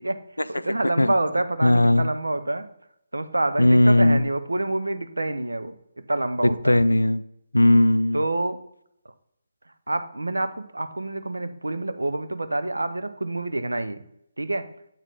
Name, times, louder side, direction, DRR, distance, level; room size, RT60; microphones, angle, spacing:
voice 1, 0.5-2.7 3.1-5.7 6.1-6.8 8.1-8.6 9.9-14.0 14.4-14.7, right 2 dB, 80° right, 11 dB, 0.5 m, -27 dB
voice 2, 1.6-2.1 3.6-4.3 6.4-7.2 7.5-8.2, left 1 dB, 85° left, 16 dB, 0.3 m, -18 dB
7.8 x 4.5 x 3.9 m, 0.76 s
figure-of-eight pair, 145°, 0 cm